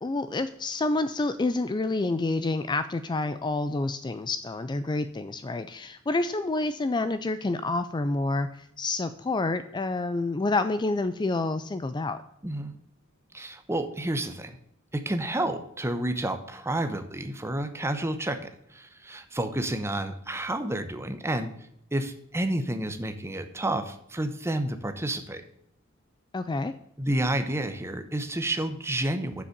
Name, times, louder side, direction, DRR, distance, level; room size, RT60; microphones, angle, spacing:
voice 1, 0.0-12.2 26.3-26.7, left 2 dB, 20° left, 11 dB, 0.4 m, -28 dB
voice 2, 12.4-12.7 13.3-14.6 14.9-21.5 21.9-25.4 27.0-29.4, right 1 dB, 10° right, 9 dB, 0.9 m, -30 dB
7.4 x 7.1 x 6.6 m, 0.75 s
head